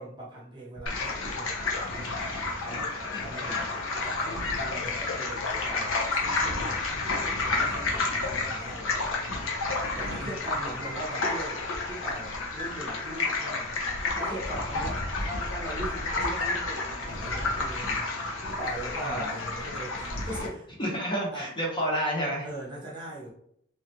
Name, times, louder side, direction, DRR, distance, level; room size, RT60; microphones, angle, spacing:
voice 1, 0.0-2.2 2.6-9.1 9.9-11.6 11.9-13.7 14.1-18.1 18.4-20.7 21.3-21.5 22.4-23.3, right 1 dB, 20° right, -5 dB, 0.8 m, -41 dB
sound 1, 0.9-20.5, left 3 dB, 75° left, 0.7 m, -30 dB
voice 2, 3.0-3.6 10.2-10.3 14.7-14.9 19.0-19.4 20.8-22.5, equal, 25° left, -3 dB, 0.9 m, -31 dB
3.1 x 2.4 x 2.8 m, 0.69 s
head